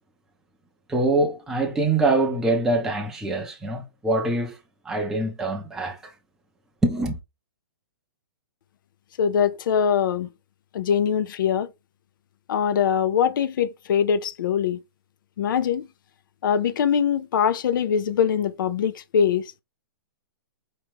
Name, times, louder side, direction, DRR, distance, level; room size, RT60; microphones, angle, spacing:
voice 1, 0.9-4.6 4.8-6.1 6.8-7.2, right 2 dB, 5° right, 0.5 m, -24 dB
voice 2, 9.2-10.3 10.7-11.7 12.5-14.8 15.4-15.9 16.4-19.4, left 8 dB, 55° left, 0.5 m, -22 dB
4.5 x 2.9 x 3.4 m
hypercardioid pair, 160°, 13 cm